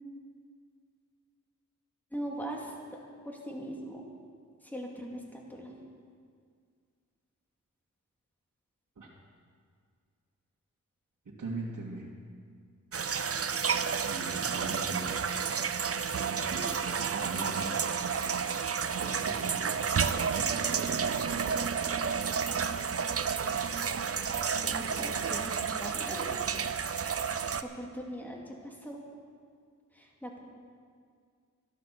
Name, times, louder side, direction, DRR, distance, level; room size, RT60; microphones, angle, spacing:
voice 1, 2.1-3.0 3.3-4.0 4.6-5.7 23.6-23.7 24.6-26.4 27.6-29.0 30.0-30.4, equal, 5° left, -2 dB, 2.5 m, -40 dB
voice 2, 11.4-12.1 14.1-15.2 16.2-16.8 17.0-17.7 19.0-19.8 20.3-21.3, right 2 dB, 65° right, -6 dB, 2.1 m, -40 dB
sound 1, 12.9-27.6, right 6 dB, 45° right, 0.6 m, -31 dB
13.0 x 12.0 x 6.7 m, 2.1 s
wide cardioid pair, 100°, 32 cm